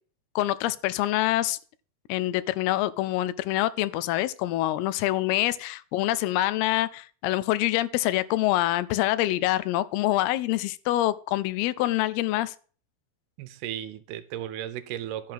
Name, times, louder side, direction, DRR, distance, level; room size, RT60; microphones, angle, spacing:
voice 1, 0.4-1.6 2.1-12.5, left 15 dB, 80° left, 2.4 m, -26 dB
voice 2, 13.4-15.3, right 11 dB, 75° right, 2.6 m, -35 dB
11.5 x 4.8 x 7.6 m
omnidirectional pair, 4.8 m